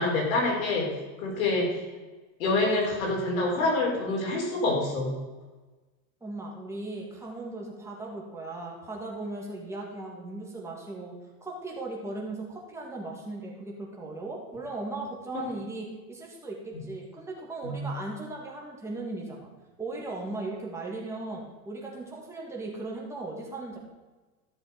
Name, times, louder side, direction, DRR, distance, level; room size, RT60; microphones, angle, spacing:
voice 1, 0.0-1.8 2.4-5.1 15.3-15.4 17.6-17.8, left 2 dB, 75° left, -2 dB, 4.3 m, -27 dB
voice 2, 6.2-11.1 11.4-19.5 19.8-23.8, right 2 dB, 5° right, -2 dB, 1.9 m, -37 dB
13.5 x 6.9 x 5.0 m, 1.2 s
supercardioid pair, 165°, 41 cm